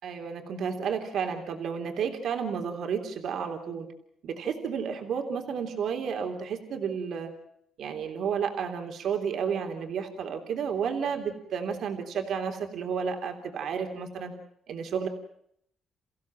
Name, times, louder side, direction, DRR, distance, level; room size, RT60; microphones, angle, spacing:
voice 1, 0.0-3.9 4.2-7.3 7.8-14.3 14.7-15.1, right 6 dB, 70° right, 4 dB, 3.5 m, -31 dB
29.5 x 16.0 x 7.6 m, 0.71 s
cardioid pair, 90°, 0 cm